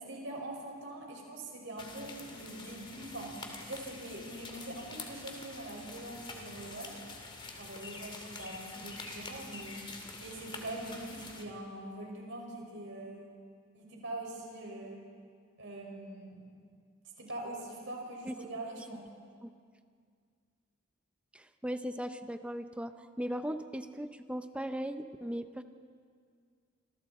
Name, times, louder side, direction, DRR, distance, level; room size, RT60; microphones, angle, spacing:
voice 1, 0.0-6.9 7.6-9.8 10.2-13.3 13.7-15.0 15.6-16.5 17.2-19.1, right 1 dB, 60° right, -1 dB, 5.9 m, -43 dB
sound 1, 1.8-11.4, left 3 dB, 25° left, 2.2 m, -46 dB
voice 2, 21.3-25.6, equal, 5° right, 8 dB, 0.7 m, -38 dB
28.5 x 26.5 x 4.4 m, 2.1 s
head